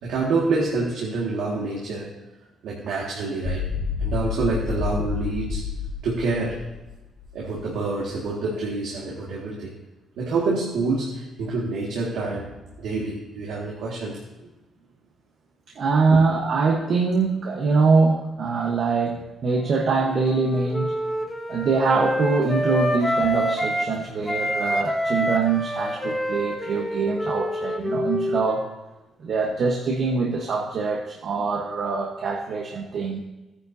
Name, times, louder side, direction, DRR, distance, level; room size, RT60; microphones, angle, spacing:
voice 1, 0.0-2.1 2.6-3.6 4.0-5.6 6.0-6.6 7.3-9.7 10.2-12.5 12.8-14.5 16.1-16.2, right 3 dB, 80° right, -4 dB, 1.9 m, -27 dB
sound 1, 3.4-7.6, left 6 dB, 35° left, 1.1 m, -29 dB
voice 2, 15.7-20.9 21.5-28.7 29.2-33.2, right 4 dB, 60° right, 0 dB, 1.2 m, -23 dB
Wind instrument woodwind instrument, 19.6-24.0 24.3-28.8, equal, 15° left, 1.6 m, -27 dB
14.5 x 9.7 x 2.8 m, 1.1 s
cardioid pair, 90°, 0 cm